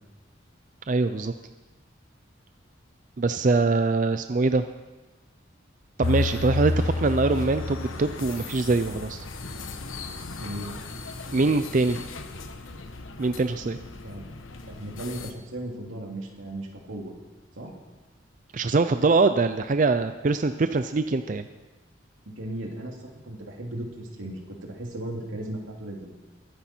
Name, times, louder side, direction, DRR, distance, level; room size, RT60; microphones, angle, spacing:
voice 1, 0.9-1.3 3.2-4.6 6.0-9.2 11.3-12.0 13.2-13.8 18.5-21.5, right 3 dB, 40° right, 9 dB, 0.4 m, -23 dB
sound 1, 6.0-15.3, left 3 dB, 85° left, 1.1 m, -33 dB
voice 2, 10.4-10.7 14.0-14.3 14.7-17.1 17.6-17.8 22.3-26.1, right 1 dB, 90° right, 0 dB, 2.7 m, -36 dB
22.5 x 9.9 x 4.4 m, 1.2 s
head